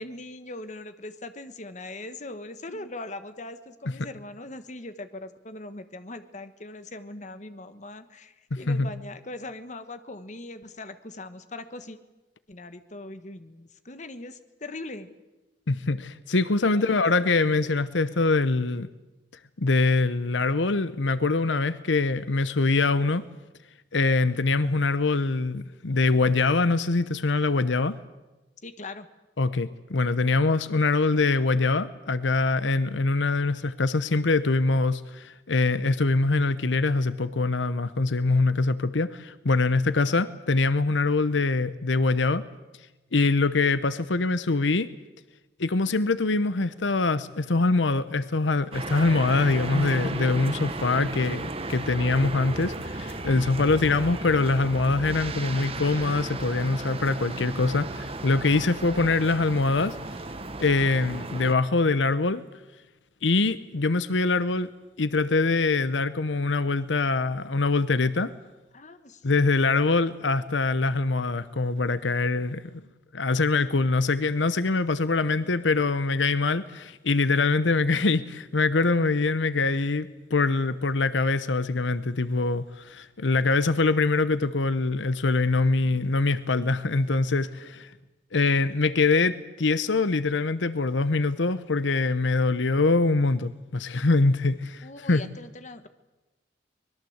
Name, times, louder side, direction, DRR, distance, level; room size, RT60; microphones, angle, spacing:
voice 1, 0.0-12.0 12.5-15.1 16.7-17.3 28.6-29.1 68.7-69.3 87.6-87.7 94.8-95.9, left 2 dB, 40° left, 10 dB, 1.4 m, -41 dB
voice 2, 8.5-8.9 15.7-18.9 19.6-23.2 23.9-28.0 29.4-42.4 43.1-44.9 45.6-60.0 60.6-62.4 63.2-64.7 65.0-68.3 69.2-72.8 73.1-87.9 88.3-95.2, left 3 dB, 90° left, 14 dB, 0.9 m, -24 dB
sound 1, 48.7-61.5, right 2 dB, 35° right, 1.5 m, -34 dB
24.0 x 21.0 x 8.0 m, 1.1 s
head